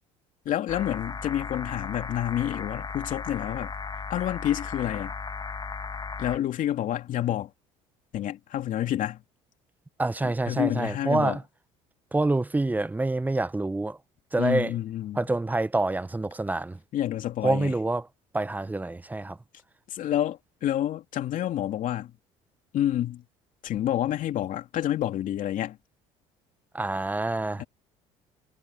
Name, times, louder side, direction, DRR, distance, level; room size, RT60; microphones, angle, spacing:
voice 1, 0.4-3.7 4.1-5.1 6.2-7.5 8.1-9.2 10.5-11.4 14.4-15.3 16.9-17.7 19.9-22.1 22.7-23.2 23.6-25.8 27.6-27.7, left 12 dB, 60° left, 2.7 m, -28 dB
sound 1, 0.7-6.4, left 5 dB, 25° left, 1.5 m, -36 dB
voice 2, 10.0-11.4 12.1-14.0 14.3-14.7 15.2-16.8 17.4-18.0 18.3-19.4 26.7-27.6, right 2 dB, 10° right, 0.8 m, -26 dB
supercardioid pair, 80°, 16 cm